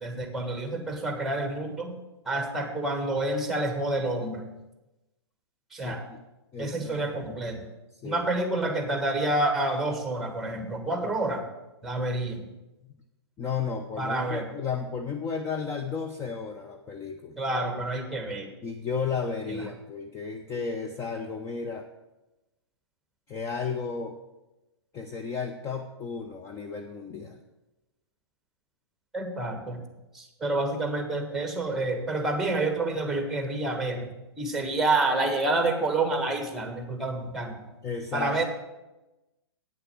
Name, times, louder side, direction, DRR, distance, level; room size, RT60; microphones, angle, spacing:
voice 1, 0.0-2.0 2.3-4.4 5.7-6.0 6.6-7.6 8.0-11.4 11.8-12.4 14.0-14.5 17.4-18.5 29.1-29.8 30.1-37.6 38.1-38.4, right 2 dB, ahead, 5 dB, 1.5 m, -28 dB
voice 2, 5.8-6.2 6.5-7.2 8.0-8.3 13.4-17.4 18.6-21.8 23.3-24.2 24.9-27.4 37.8-38.4, left 5 dB, 20° left, 5 dB, 0.7 m, -33 dB
8.9 x 6.7 x 7.2 m, 1.0 s
figure-of-eight pair, 120°, 15 cm